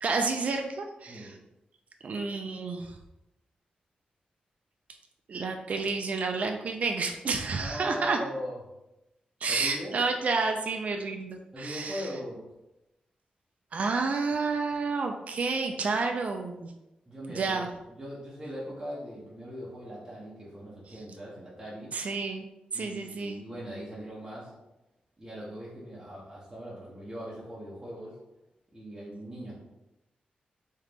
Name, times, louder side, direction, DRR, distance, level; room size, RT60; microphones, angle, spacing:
voice 1, 0.0-1.3 2.0-3.0 5.3-8.2 9.4-12.1 13.7-16.7 17.3-17.7 21.9-22.5 22.7-23.4, right 4 dB, 55° right, 4 dB, 0.4 m, -30 dB
voice 2, 7.6-8.6 9.5-9.9 11.5-12.4 17.1-21.9 22.7-24.5 25.2-28.2 28.7-29.6, equal, 15° right, -8 dB, 1.0 m, -40 dB
3.7 x 3.2 x 3.4 m, 0.94 s
wide cardioid pair, 120°, 3 cm